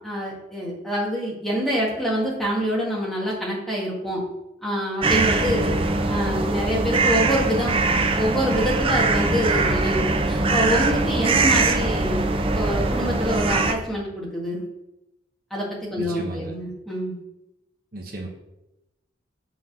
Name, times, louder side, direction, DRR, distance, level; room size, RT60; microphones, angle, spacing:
voice 1, 0.0-4.2 4.6-5.8 6.1-12.2 12.5-14.6 15.5-17.1, equal, ahead, -5 dB, 1.8 m, -26 dB
sound 1, 5.0-13.7, right 3 dB, 30° right, 0.5 m, -22 dB
voice 2, 5.6-6.0 11.3-11.6 16.0-16.5 17.9-18.3, right 2 dB, 50° right, 1 dB, 1.0 m, -34 dB
7.6 x 4.0 x 6.0 m, 0.92 s
head